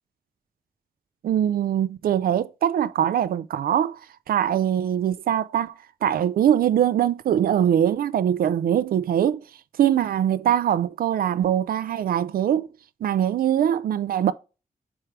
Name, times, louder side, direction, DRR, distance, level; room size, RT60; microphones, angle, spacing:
voice 1, 1.2-4.0 4.3-5.7 6.0-9.4 9.8-12.7 13.0-14.3, right 10 dB, 85° right, 0.4 m, -22 dB
4.6 x 4.4 x 5.0 m
wide cardioid pair, 170°, 15 cm